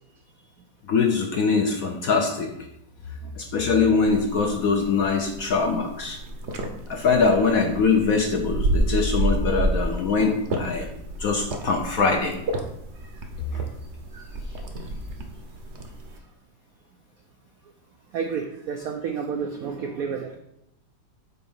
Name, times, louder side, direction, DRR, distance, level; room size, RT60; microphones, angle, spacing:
voice 1, 0.9-2.5 3.4-6.2 6.9-10.9 11.2-12.4 13.5-13.6, left 4 dB, 65° left, 3 dB, 0.9 m, -22 dB
sound 1, 4.0-16.2, right 1 dB, 50° right, 0.8 m, -30 dB
voice 2, 18.1-20.4, right 6 dB, 80° right, 4 dB, 0.8 m, -30 dB
5.8 x 4.3 x 5.4 m, 0.81 s
omnidirectional pair, 2.1 m